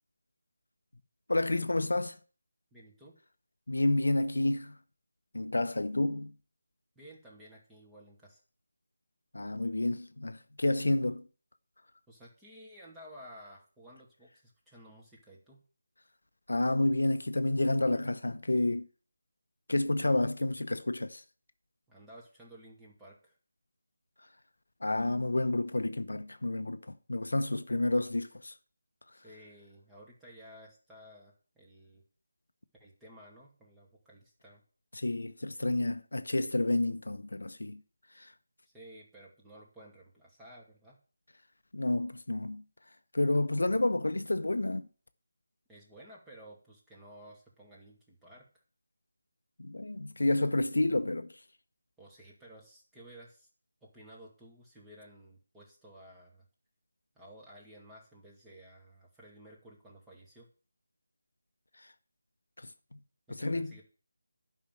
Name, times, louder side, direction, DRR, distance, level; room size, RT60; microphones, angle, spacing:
voice 1, 1.3-2.2 3.7-4.8 5.3-6.3 9.3-11.3 16.5-18.9 19.7-21.2 24.8-28.6 34.9-37.8 38.1-38.3 41.7-42.6 43.1-44.9 49.6-51.4 61.8-61.9 62.6-63.0 63.3-63.8, left 2 dB, 70° left, 0.8 m, -30 dB
voice 2, 2.7-3.2 7.0-8.4 12.1-15.6 21.9-23.4 29.2-32.0 32.8-34.6 38.7-41.0 45.7-48.5 52.0-53.5 53.8-56.5 57.1-60.5 63.3-63.8, equal, 5° right, 2.5 m, -54 dB
11.5 x 5.7 x 7.7 m
figure-of-eight pair, 160°, 0 cm